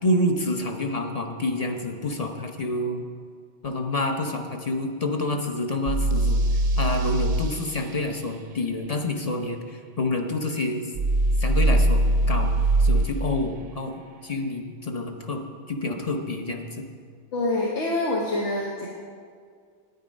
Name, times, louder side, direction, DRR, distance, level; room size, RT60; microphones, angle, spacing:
voice 1, 0.0-3.0 3.6-6.4 6.8-10.8 11.4-12.5 12.8-15.4 15.7-16.8, left 2 dB, 40° left, 4 dB, 0.8 m, -28 dB
sound 1, 5.9-7.5 11.0-13.1, right 1 dB, 50° right, 0.6 m, -21 dB
voice 2, 17.3-18.9, left 2 dB, 90° left, -2 dB, 1.3 m, -26 dB
9.3 x 9.2 x 5.2 m, 2.1 s
omnidirectional pair, 1.1 m